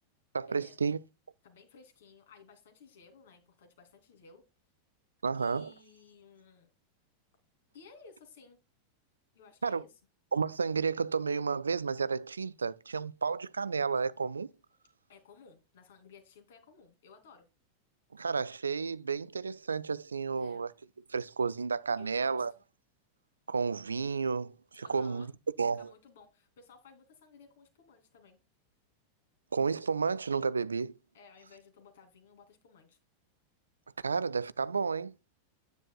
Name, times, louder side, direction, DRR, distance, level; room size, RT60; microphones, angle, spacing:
voice 1, 0.3-1.0 5.2-5.7 9.6-9.8 10.3-14.5 18.1-20.7 21.1-22.5 23.5-25.3 25.6-25.9 29.5-30.9 34.0-35.1, right 5 dB, 75° right, 0.3 m, -31 dB
voice 2, 1.4-4.4 5.3-6.7 7.7-8.6 9.3-9.9 15.1-17.5 20.3-20.7 21.9-22.4 24.8-25.3 25.7-28.4 31.1-33.0, left 5 dB, 60° left, 2.7 m, -57 dB
9.8 x 9.0 x 2.3 m
figure-of-eight pair, 90°, 0 cm